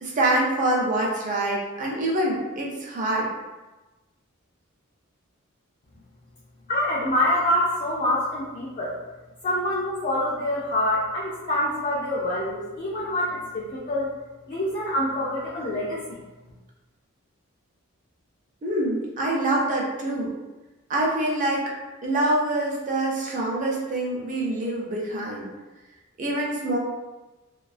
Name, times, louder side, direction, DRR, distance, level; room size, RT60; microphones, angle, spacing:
voice 1, 0.0-3.3 18.6-20.3 20.9-21.7 22.0-25.5 26.2-26.8, right 1 dB, 35° right, -3 dB, 0.5 m, -25 dB
voice 2, 6.7-9.0 9.4-14.1 14.5-16.2, left 1 dB, 35° left, -6 dB, 0.3 m, -26 dB
2.3 x 2.3 x 2.4 m, 1.1 s
head